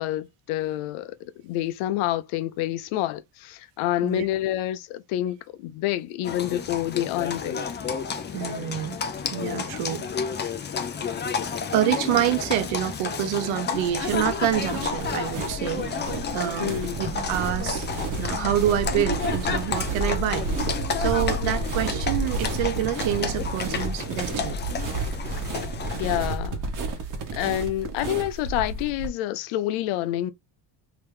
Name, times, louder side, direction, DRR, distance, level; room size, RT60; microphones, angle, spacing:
voice 1, 0.0-7.6 16.6-17.0 26.0-26.6 27.3-30.3, left 14 dB, 85° left, 0.7 m, -28 dB
Livestock farm animals working animals, 6.2-26.2, left 6 dB, 25° left, 0.4 m, -31 dB
voice 2, 8.3-9.0 9.3-10.0 10.8-10.9 11.7-15.9 16.3-16.7 17.0-17.9 18.2-20.4 21.0-24.6, right 12 dB, 80° right, 0.9 m, -27 dB
sound 1, 13.7-29.1, right 3 dB, 40° right, 1.1 m, -31 dB
3.4 x 2.9 x 3.2 m
cardioid pair, 135°, 48 cm